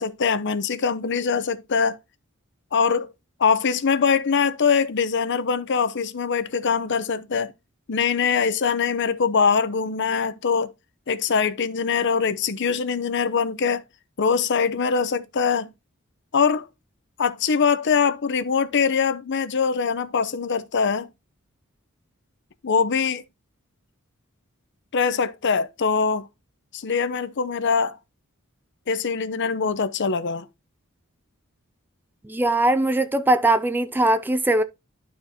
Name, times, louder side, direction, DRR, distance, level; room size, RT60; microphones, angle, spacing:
voice 1, 0.0-2.0 2.7-3.1 3.4-7.5 7.9-10.7 11.1-13.8 14.2-15.7 16.3-16.7 17.2-21.1 22.6-23.2 24.9-26.3 26.7-28.0 28.9-30.4, left 6 dB, 55° left, 0.7 m, -23 dB
voice 2, 32.2-34.6, right 1 dB, 10° right, 0.3 m, -20 dB
12.0 x 4.4 x 2.7 m
head